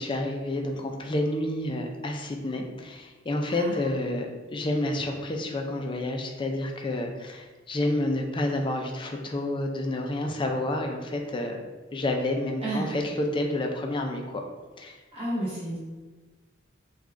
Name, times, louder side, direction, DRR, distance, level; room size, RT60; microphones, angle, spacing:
voice 1, 0.0-11.6 11.9-14.4 14.8-15.0, left 1 dB, 25° left, 2 dB, 0.4 m, -29 dB
voice 2, 3.5-3.9 12.6-13.0 15.1-15.8, right 1 dB, 30° right, -8 dB, 0.9 m, -31 dB
6.2 x 2.3 x 2.5 m, 1.3 s
head